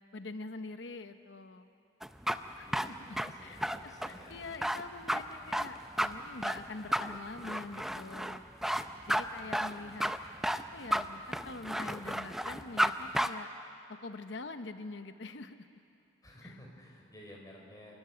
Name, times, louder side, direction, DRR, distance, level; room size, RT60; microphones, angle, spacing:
voice 1, 0.1-1.7 2.6-8.4 9.1-10.1 10.5-13.5 13.9-15.8 16.4-16.5, left 3 dB, 70° left, 9 dB, 0.9 m, -45 dB
sound 1, 2.0-12.9 13.1-13.3, equal, ahead, 0.5 m, -32 dB
voice 2, 2.6-4.4 8.6-8.9 16.2-18.0, equal, 20° left, -1 dB, 4.4 m, -53 dB
27.0 x 13.0 x 9.6 m, 2.6 s
head